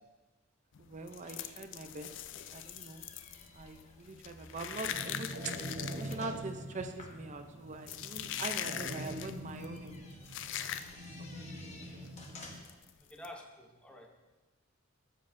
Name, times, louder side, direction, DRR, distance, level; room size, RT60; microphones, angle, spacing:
sound 1, 0.7-11.2 11.5-11.7 12.0-12.2 12.6-13.3, left 10 dB, 65° left, 0.4 m, -42 dB
voice 1, 0.8-2.1 2.5-3.0 3.5-5.5 5.9-10.1 10.6-10.7 11.2-12.0, right 3 dB, 35° right, 7 dB, 0.6 m, -43 dB
sound 2, 1.0-12.8, left 2 dB, 35° left, 1.2 m, -56 dB
sound 3, 4.7-12.6, equal, 65° right, 1.1 m, -44 dB
voice 2, 13.0-14.1, left 1 dB, 5° left, 1 dB, 0.8 m, -50 dB
11.5 x 7.5 x 2.6 m, 1.2 s
head